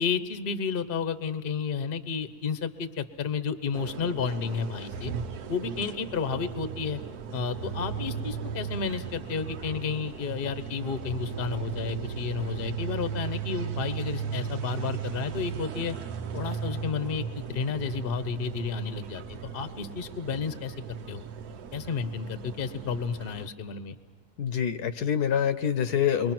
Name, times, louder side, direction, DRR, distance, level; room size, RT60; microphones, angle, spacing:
voice 1, 0.0-5.1 5.5-7.0 7.3-15.9 16.3-19.2 19.5-20.7 21.1-21.2 21.7-24.0, left 6 dB, 40° left, 11 dB, 1.0 m, -31 dB
sound 1, 3.7-23.5, right 7 dB, 75° right, 1.4 m, -36 dB
voice 2, 24.4-26.3, left 8 dB, 75° left, 11 dB, 1.4 m, -26 dB
27.5 x 23.0 x 6.0 m, 1.5 s
omnidirectional pair, 1.7 m